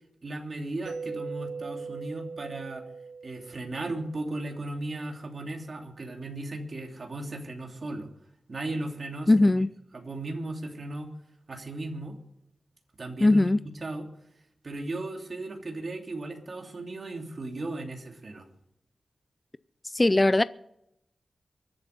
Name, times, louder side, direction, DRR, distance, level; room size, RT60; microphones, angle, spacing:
voice 1, 0.2-2.8 3.2-8.1 8.5-9.5 9.9-11.1 11.5-12.2 13.0-13.5 13.8-14.0 14.6-18.5, right 2 dB, 45° right, 3.0 m, -36 dB
Mallet percussion, 0.9-4.6, right 4 dB, 80° right, 1.7 m, -40 dB
voice 2, 9.3-9.7 13.2-13.6 19.9-20.4, left 2 dB, 20° left, 0.5 m, -20 dB
23.5 x 7.8 x 5.4 m
wide cardioid pair, 90°, 0 cm